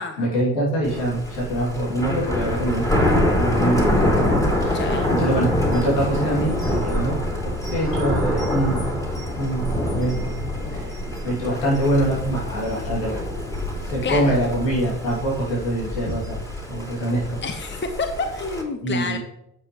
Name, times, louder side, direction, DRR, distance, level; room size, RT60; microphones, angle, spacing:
voice 1, 0.2-9.0 9.3-10.9 11.2-13.2 13.8-16.4 16.7-17.4 18.8-19.2, right 1 dB, 85° left, -5 dB, 2.8 m, -25 dB
Thunder, 0.8-18.6, left 1 dB, 5° left, 2.7 m, -25 dB
voice 2, 4.7-5.1 14.0-14.4 17.4-19.2, left 4 dB, 25° left, 6 dB, 1.0 m, -28 dB
9.4 x 6.9 x 3.1 m, 0.78 s
hypercardioid pair, 50°, 49 cm